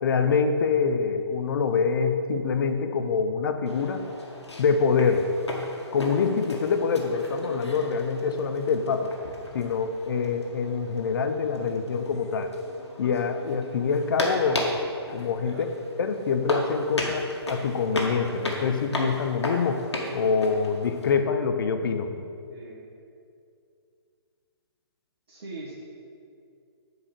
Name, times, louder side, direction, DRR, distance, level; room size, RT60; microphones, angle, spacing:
voice 1, 0.0-4.0 4.6-5.3 5.9-9.1 9.5-12.5 13.0-14.8 15.1-15.6 16.0-22.3, left 5 dB, 55° left, 7 dB, 0.7 m, -25 dB
sound 1, 3.7-21.1, left 1 dB, 85° left, 1.6 m, -36 dB
voice 2, 22.5-22.9 25.3-25.7, right 2 dB, 60° right, -7 dB, 1.8 m, -42 dB
7.2 x 4.9 x 6.6 m, 2.4 s
figure-of-eight pair, 130°, 14 cm